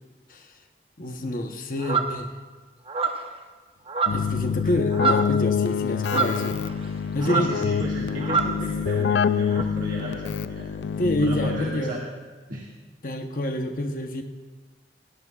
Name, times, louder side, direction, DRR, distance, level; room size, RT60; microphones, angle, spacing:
voice 1, 1.0-2.3 4.1-6.5 7.1-7.5 11.0-12.0 13.0-14.2, left 1 dB, 50° left, 4 dB, 1.0 m, -27 dB
sound 1, 1.8-2.2 2.9-3.3 3.9-4.4 4.7-5.4 6.0-6.9 7.2-7.6 8.2-8.6 9.5-9.6, right 5 dB, 30° right, 0.8 m, -26 dB
Keyboard (musical), 4.1-11.9, left 7 dB, 90° left, 0.4 m, -26 dB
voice 2, 7.2-10.7 11.0-12.0 12.5-12.7, right 1 dB, 50° right, -4 dB, 1.7 m, -35 dB
17.5 x 16.5 x 2.4 m, 1.3 s
head